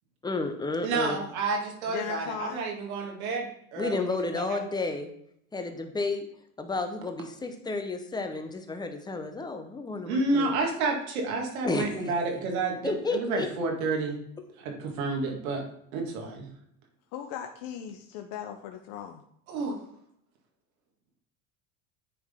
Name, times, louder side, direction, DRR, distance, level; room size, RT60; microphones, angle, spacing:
voice 1, 0.2-1.2 3.8-5.1 5.5-6.3 6.6-10.5 11.6-12.1 12.8-13.5, left 3 dB, 10° left, 6 dB, 0.7 m, -31 dB
voice 2, 0.8-4.6 10.1-14.2 14.6-15.6 15.9-16.5 19.5-19.8, right 3 dB, 85° right, 2 dB, 1.9 m, -30 dB
voice 3, 1.9-2.7 17.1-19.2, left 9 dB, 55° left, 5 dB, 0.6 m, -38 dB
9.3 x 3.8 x 3.6 m, 0.69 s
supercardioid pair, 120°, 41 cm